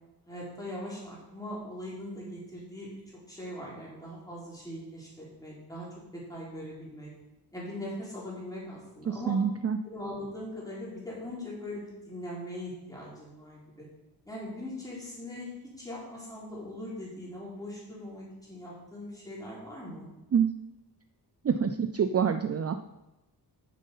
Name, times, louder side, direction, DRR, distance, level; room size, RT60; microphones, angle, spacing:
voice 1, 0.3-3.0 3.3-5.9 6.1-7.1 7.5-9.4 9.8-13.8 14.3-15.5 15.8-20.1, left 1 dB, 10° left, -6 dB, 3.8 m, -40 dB
voice 2, 9.1-9.8 20.3-20.5 21.4-22.7, right 7 dB, 40° right, 9 dB, 0.4 m, -26 dB
9.3 x 7.5 x 5.6 m, 0.99 s
wide cardioid pair, 165°, 40 cm